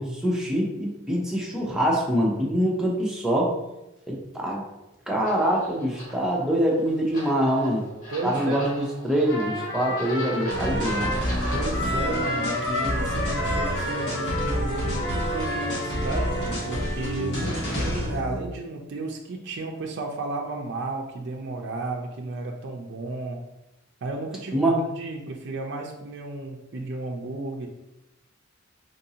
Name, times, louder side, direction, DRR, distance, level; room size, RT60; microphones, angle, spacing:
voice 1, 0.0-3.6 4.1-4.6 5.1-7.9 8.2-11.1 24.5-24.8, equal, 5° right, -3 dB, 0.6 m, -24 dB
sound 1, 5.2-12.1, equal, 40° left, 1.3 m, -41 dB
voice 2, 8.1-8.6 11.5-23.4 24.0-24.7 25.0-27.7, right 3 dB, 60° right, 1 dB, 0.4 m, -33 dB
Trumpet, 9.2-16.8, left 1 dB, 85° left, 0.7 m, -32 dB
sound 2, 10.5-18.4, equal, 60° left, 1.2 m, -28 dB
3.9 x 2.5 x 2.8 m, 0.93 s
head